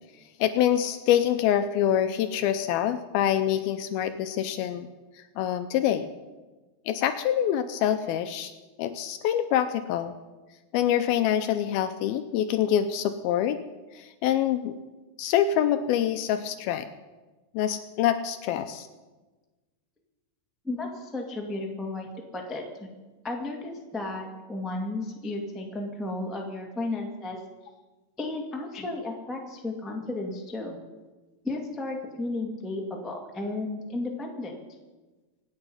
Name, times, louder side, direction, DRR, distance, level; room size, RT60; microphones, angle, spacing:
voice 1, 0.4-4.9 5.2-6.1 6.9-8.5 8.8-10.1 10.7-13.6 13.9-14.8 15.2-16.9 17.5-18.9, left 10 dB, 80° left, 9 dB, 2.3 m, -25 dB
voice 2, 20.6-22.9 23.2-27.4 28.2-30.8 31.4-34.5, left 2 dB, ahead, 0 dB, 0.5 m, -33 dB
26.0 x 9.1 x 5.5 m, 1.2 s
omnidirectional pair, 4.7 m